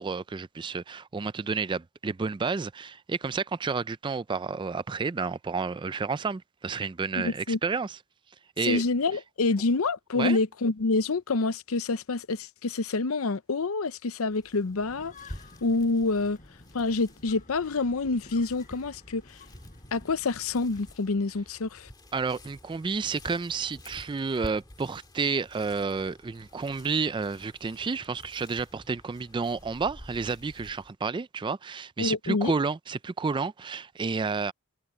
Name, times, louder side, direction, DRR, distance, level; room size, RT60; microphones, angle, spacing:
voice 1, 0.0-8.0 8.6-8.8 10.2-10.4 22.1-34.5, right 4 dB, 20° right, 0.3 m, -30 dB
voice 2, 7.1-7.6 8.6-15.1 15.6-16.4 16.7-19.4 19.9-21.9 32.0-32.5, left 3 dB, 80° left, 0.7 m, -27 dB
sound 1, 14.3-30.9, left 1 dB, 20° left, 1.9 m, -50 dB
sound 2, 14.8-21.0, left 2 dB, 40° left, 6.0 m, -52 dB
head